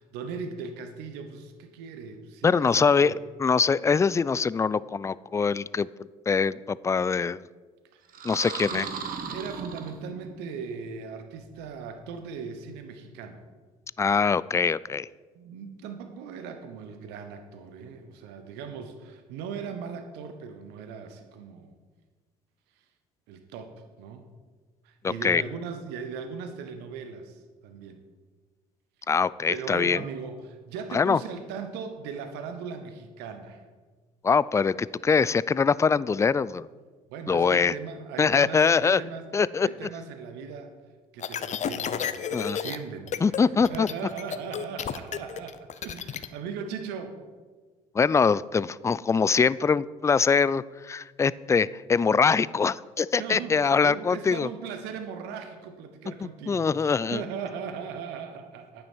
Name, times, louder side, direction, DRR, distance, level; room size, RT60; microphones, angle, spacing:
voice 1, 0.0-3.2 7.9-8.3 8.7-13.4 15.3-21.7 23.3-23.7 24.0-24.2 24.8-28.0 29.5-33.6 37.1-39.3 39.6-40.7 41.1-47.2 53.2-58.8, right 6 dB, 70° right, 7 dB, 1.0 m, -38 dB
voice 2, 2.4-3.1 3.4-5.9 6.3-7.4 8.2-8.9 14.0-15.1 25.0-25.4 29.1-30.0 30.9-31.2 34.2-36.7 37.3-37.7 38.2-39.0 39.3-39.7 42.3-42.6 43.2-43.9 47.9-54.5 56.5-57.2, left 5 dB, 15° left, 19 dB, 0.3 m, -23 dB
sound 1, 8.1-10.4, right 6 dB, 55° right, 1.3 m, -36 dB
sound 2, 41.2-42.8 43.1-43.4 43.7-46.3, left 8 dB, 40° left, 0.7 m, -32 dB
10.5 x 9.1 x 4.5 m, 1.4 s
hypercardioid pair, 55°, 18 cm